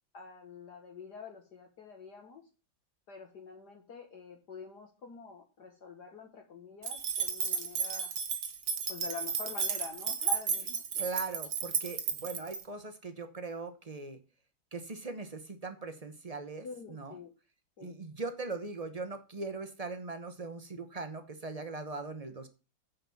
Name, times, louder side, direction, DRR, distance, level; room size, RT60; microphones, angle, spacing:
voice 1, 0.1-2.4 3.1-8.1 8.9-11.0 16.6-17.3 17.8-18.0, left 4 dB, 55° left, 2 dB, 1.9 m, -46 dB
sound 1, 6.8-12.6, right 6 dB, 65° right, 1.8 m, -33 dB
voice 2, 11.0-14.2 14.7-17.2 17.8-22.5, right 3 dB, 45° right, 9 dB, 0.5 m, -40 dB
9.2 x 5.3 x 7.1 m, 0.34 s
omnidirectional pair, 2.2 m